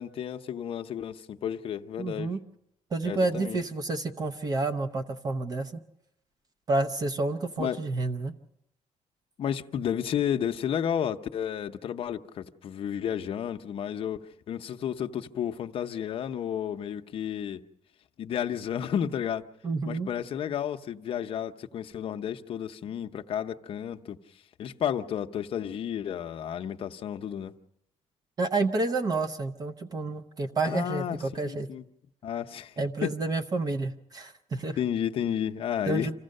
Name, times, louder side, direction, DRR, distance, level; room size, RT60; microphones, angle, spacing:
voice 1, 0.0-2.3 3.0-3.6 7.6-7.8 9.4-17.6 18.2-19.4 19.8-24.2 24.6-27.5 30.6-31.8 32.2-32.7 33.0-33.1 34.8-36.1, left 9 dB, 50° left, 0.7 m, -32 dB
voice 2, 2.0-2.4 2.9-5.8 6.7-8.3 19.6-20.1 28.4-31.7 32.8-34.8 35.9-36.1, right 3 dB, 30° right, 0.7 m, -29 dB
26.5 x 15.0 x 6.5 m
cardioid pair, 165°, 12 cm